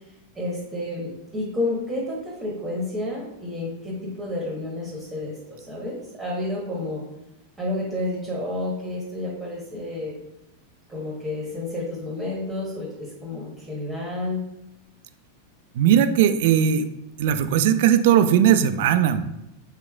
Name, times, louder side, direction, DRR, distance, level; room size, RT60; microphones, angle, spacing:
voice 1, 0.3-7.0 7.6-10.2 10.9-14.4, left 2 dB, 10° right, -4 dB, 0.9 m, -30 dB
voice 2, 15.7-16.9 17.2-19.2, right 9 dB, 50° right, 10 dB, 0.3 m, -18 dB
4.5 x 3.7 x 2.3 m, 0.90 s
figure-of-eight pair, 90°, 0 cm